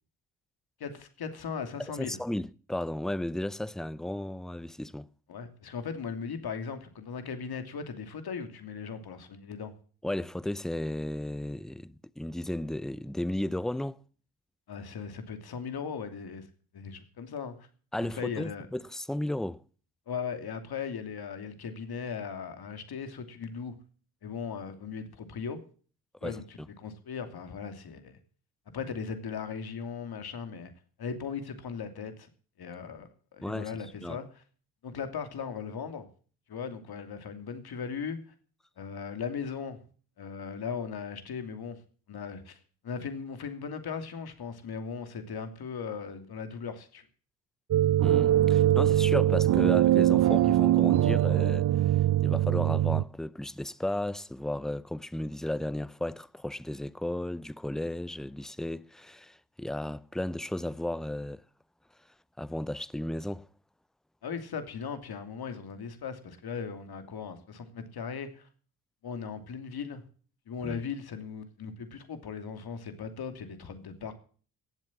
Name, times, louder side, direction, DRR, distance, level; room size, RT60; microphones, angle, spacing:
voice 1, 0.8-2.2 5.3-9.7 14.7-16.5 16.7-17.7 18.1-18.7 20.1-23.7 24.2-25.6 26.2-28.2 28.7-30.7 31.0-32.3 32.6-34.2 34.8-36.1 36.5-38.3 38.8-39.8 40.2-41.8 42.1-42.6 42.8-47.0 64.2-68.5 69.0-70.0 70.5-74.1, left 6 dB, 50° left, 2.8 m, -38 dB
voice 2, 2.0-5.1 10.0-14.0 17.9-19.6 26.2-26.4 33.4-34.2 48.0-51.7 52.2-61.4 62.4-63.5 70.6-70.8, left 1 dB, ahead, 0.6 m, -34 dB
sound 1, 47.7-53.0, right 13 dB, 40° right, 0.6 m, -22 dB
17.5 x 7.6 x 7.4 m
hypercardioid pair, 55°, 47 cm